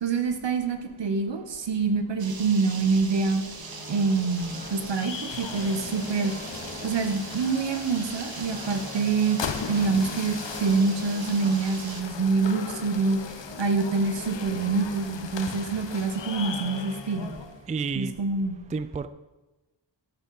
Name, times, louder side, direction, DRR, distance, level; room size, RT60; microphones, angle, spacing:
voice 1, 0.0-3.4 3.9-6.3 6.8-9.4 9.7-13.2 13.6-17.3 17.9-18.6, right 4 dB, 70° right, 7 dB, 1.3 m, -26 dB
sound 1, 2.2-12.0, right 4 dB, 50° right, 1.3 m, -41 dB
sound 2, 3.5-17.6, left 6 dB, 70° left, 1.0 m, -39 dB
sound 3, 3.5-17.4, left 1 dB, 15° left, 4.2 m, -44 dB
voice 2, 17.7-18.1 18.7-19.1, right 5 dB, 20° right, 13 dB, 0.3 m, -29 dB
13.0 x 8.1 x 5.0 m, 1.1 s
wide cardioid pair, 120°, 45 cm